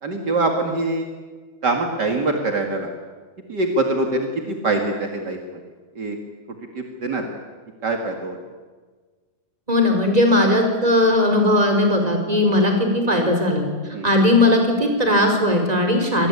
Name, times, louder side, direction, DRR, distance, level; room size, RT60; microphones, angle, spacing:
voice 1, 0.0-1.1 1.6-2.9 3.5-5.4 5.9-6.2 6.7-7.3 7.8-8.3 13.9-14.1, right 2 dB, 45° right, 4 dB, 1.3 m, -23 dB
voice 2, 9.7-13.6 14.0-16.3, left 1 dB, 10° right, 4 dB, 4.2 m, -18 dB
25.5 x 20.0 x 9.8 m, 1.4 s
omnidirectional pair, 5.1 m